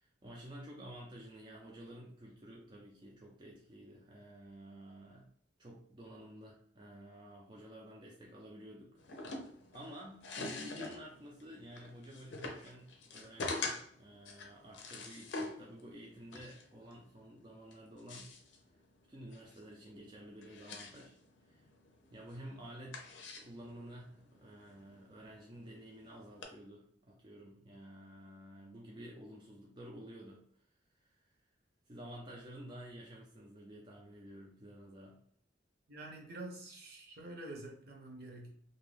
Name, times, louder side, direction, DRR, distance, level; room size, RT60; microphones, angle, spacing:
voice 1, 0.0-5.3 5.6-18.3 19.1-21.2 21.5-21.7 22.1-23.0 23.4-30.7 31.0-31.4 31.9-35.2, right 1 dB, 25° right, -3 dB, 0.4 m, -51 dB
sound 1, 9.0-26.4, left 3 dB, 70° left, 0.5 m, -46 dB
voice 2, 35.9-38.5, right 2 dB, 55° right, 0 dB, 0.8 m, -47 dB
2.6 x 2.2 x 3.2 m, 0.63 s
head